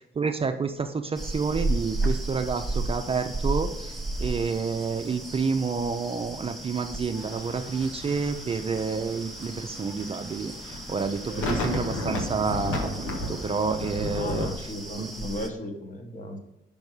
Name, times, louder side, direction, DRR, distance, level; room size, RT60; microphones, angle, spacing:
voice 1, 0.2-14.5 15.0-15.1, right 5 dB, 30° right, 6 dB, 0.5 m, -29 dB
sound 1, 1.1-15.5, right 2 dB, ahead, 0.7 m, -34 dB
sound 2, 7.2-14.5, left 1 dB, 85° left, 1.3 m, -34 dB
voice 2, 14.1-16.4, left 1 dB, 40° left, 3 dB, 1.3 m, -36 dB
5.3 x 5.2 x 4.7 m, 0.88 s
cardioid pair, 90°, 20 cm